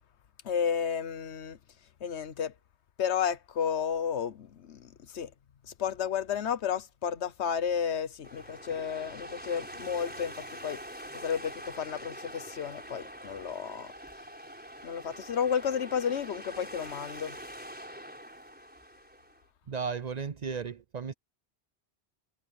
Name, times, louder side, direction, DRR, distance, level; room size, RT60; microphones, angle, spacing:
voice 1, 0.4-1.6 2.0-2.5 3.0-5.3 5.8-10.3 10.6-10.8 11.2-13.9 14.8-17.4, left 7 dB, 85° left, 1.2 m, -32 dB
sound 1, 8.2-19.4, equal, 10° right, 4.7 m, -45 dB
voice 2, 19.7-21.1, right 5 dB, 50° right, 0.6 m, -35 dB
omnidirectional pair, 1.1 m